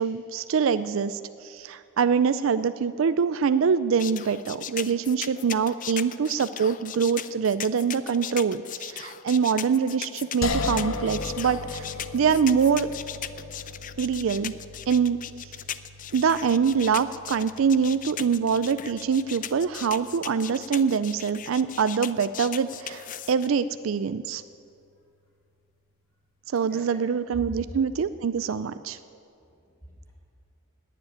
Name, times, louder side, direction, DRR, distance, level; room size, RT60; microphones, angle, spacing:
voice 1, 0.0-11.9 12.1-12.9 14.0-14.5 14.9-15.5 16.1-24.4 26.5-29.0, right 6 dB, 75° right, 13 dB, 0.4 m, -24 dB
sound 1, 4.0-23.5, left 10 dB, 40° left, 0.5 m, -37 dB
sound 2, 10.4-23.5, left 3 dB, 90° left, 0.9 m, -38 dB
voice 2, 26.5-27.5 28.0-28.1 29.4-30.1, right 1 dB, 10° left, -5 dB, 5.0 m, -47 dB
18.5 x 7.6 x 9.8 m, 2.4 s
head